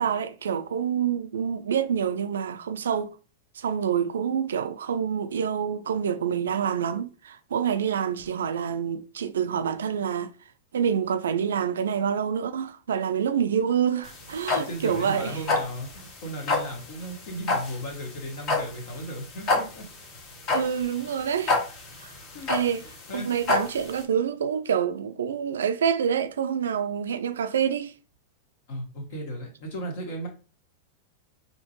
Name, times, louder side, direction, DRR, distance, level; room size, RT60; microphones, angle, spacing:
voice 1, 0.0-3.1 3.6-10.3 10.7-15.4 20.5-21.6 22.0-22.1 22.5-22.9 23.1-27.9, right 8 dB, 80° right, 0.4 m, -27 dB
sound 1, 14.0-24.0, left 3 dB, 45° left, 1.4 m, -28 dB
voice 2, 14.5-19.8 22.3-22.5 22.8-23.3 28.7-30.3, right 1 dB, 65° left, 1.7 m, -36 dB
4.3 x 2.9 x 3.0 m
hypercardioid pair, 100°, 0 cm